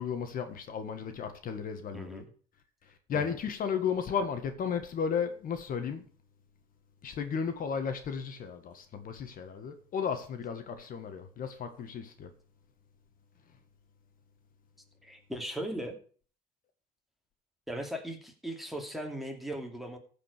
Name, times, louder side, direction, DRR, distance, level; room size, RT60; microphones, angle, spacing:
voice 1, 0.0-2.2 3.1-6.0 7.0-12.3, left 6 dB, 55° left, 1.7 m, -34 dB
voice 2, 15.0-16.0 17.7-20.0, right 1 dB, ahead, 2.7 m, -38 dB
15.0 x 5.2 x 6.7 m
cardioid pair, 110°, 17 cm